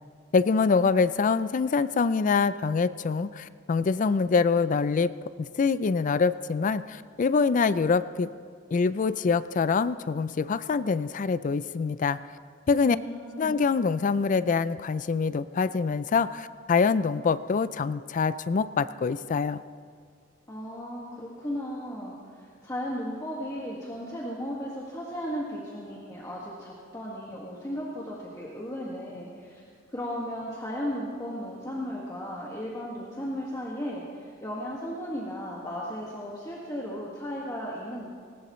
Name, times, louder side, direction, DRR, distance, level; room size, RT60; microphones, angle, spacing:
voice 1, 0.3-5.1 5.4-8.3 8.7-12.2 12.7-13.0 13.4-19.6, left 5 dB, 40° left, 15 dB, 0.4 m, -25 dB
voice 2, 12.8-13.6 20.5-22.2 22.6-29.6 29.9-38.0, equal, 20° left, -5 dB, 1.8 m, -35 dB
19.5 x 19.0 x 3.1 m, 2.1 s
head